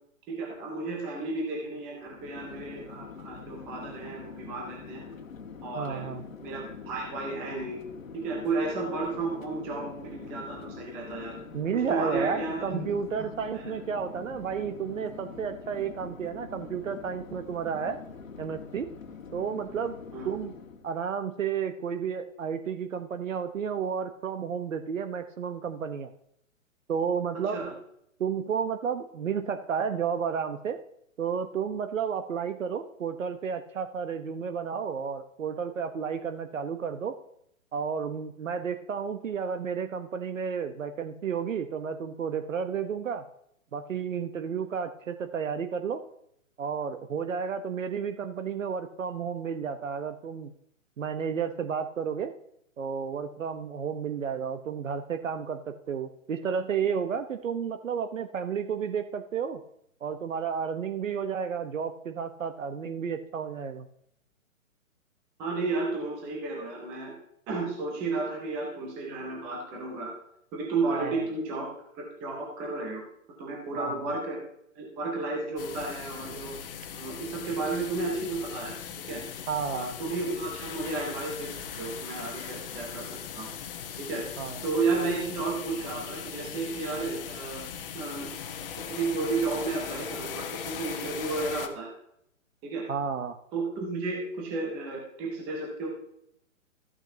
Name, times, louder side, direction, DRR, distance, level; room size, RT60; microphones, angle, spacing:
voice 1, 0.3-5.1 5.6-6.0 6.4-7.8 8.1-11.4 11.7-13.0 13.5-13.6 20.1-20.3 27.3-27.7 65.4-67.1 67.5-70.1 70.5-71.7 71.9-73.0 73.4-74.4 74.8-76.6 76.9-78.8 79.1-79.2 79.7-83.5 84.1-84.2 84.6-87.6 87.9-88.3 88.9-91.9 92.6-92.8 93.5-95.9, right 3 dB, 5° right, -1 dB, 0.4 m, -32 dB
Chatter / Fixed-wing aircraft airplane, 2.0-20.9, left 5 dB, 70° left, 1.5 m, -44 dB
voice 2, 5.7-6.2 11.5-18.0 18.4-18.9 19.3-20.0 20.2-20.5 20.8-26.1 26.9-27.6 28.2-30.8 31.2-37.2 37.7-43.3 43.7-46.0 46.6-50.5 51.0-52.3 52.8-59.6 60.0-63.9 70.8-71.2 73.8-74.0 79.5-79.9 84.4-84.6 92.9-93.4, right 7 dB, 65° right, 8 dB, 1.0 m, -32 dB
sound 1, 75.6-91.7, left 8 dB, 40° left, 1.1 m, -39 dB
13.5 x 8.8 x 2.7 m, 0.73 s
figure-of-eight pair, 130°, 41 cm